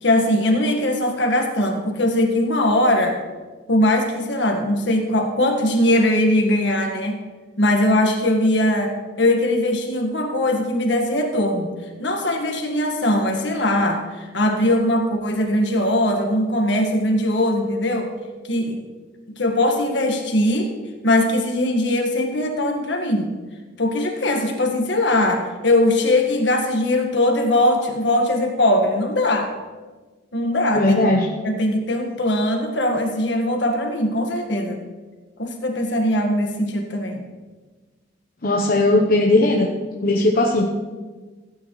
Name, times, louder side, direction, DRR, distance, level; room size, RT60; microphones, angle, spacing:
voice 1, 0.0-3.2 3.7-7.2 7.6-11.7 12.0-18.1 18.5-18.8 19.3-20.7 21.0-23.3 23.8-29.5 30.3-30.9 31.4-34.8 35.4-37.2, left 1 dB, 70° left, 2 dB, 1.7 m, -20 dB
voice 2, 30.7-31.3 38.4-39.7 40.0-40.6, left 2 dB, 50° left, 0 dB, 0.9 m, -17 dB
16.0 x 9.2 x 3.2 m, 1.3 s
head